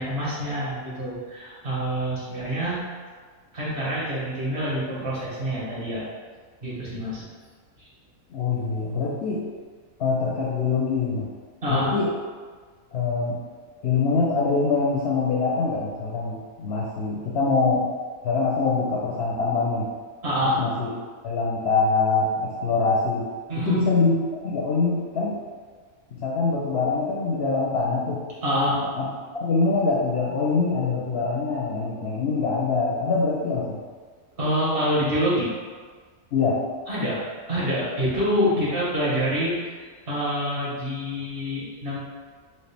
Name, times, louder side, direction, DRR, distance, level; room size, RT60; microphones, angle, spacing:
voice 1, 0.0-2.8 3.5-6.0 6.6-7.2 7.8-7.9 11.6-11.9 20.2-20.6 23.5-23.8 28.4-28.8 34.4-35.5 36.9-37.2 37.5-42.0, equal, 40° right, -8 dB, 1.3 m, -26 dB
voice 2, 8.3-9.5 10.0-11.3 11.7-12.1 12.9-13.4 13.8-17.9 18.2-19.9 20.6-20.9 21.2-23.3 23.6-25.4 26.2-28.2 29.0-29.1 29.3-33.8 36.3-36.6, left 4 dB, 65° left, -3 dB, 0.6 m, -24 dB
4.3 x 2.5 x 3.3 m, 1.5 s
omnidirectional pair, 1.5 m